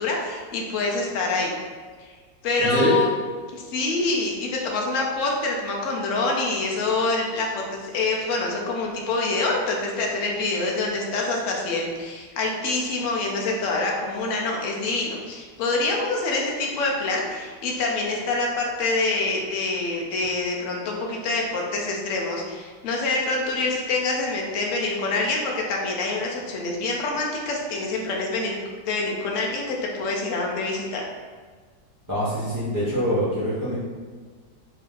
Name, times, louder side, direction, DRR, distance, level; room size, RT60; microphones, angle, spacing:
voice 1, 0.0-1.5 2.0-2.1 2.4-3.1 3.5-28.6 28.8-31.0, left 3 dB, 65° left, -1 dB, 0.8 m, -26 dB
voice 2, 2.6-3.0 32.1-33.7, equal, 15° right, -12 dB, 0.7 m, -24 dB
3.3 x 2.7 x 3.7 m, 1.5 s
omnidirectional pair, 1.9 m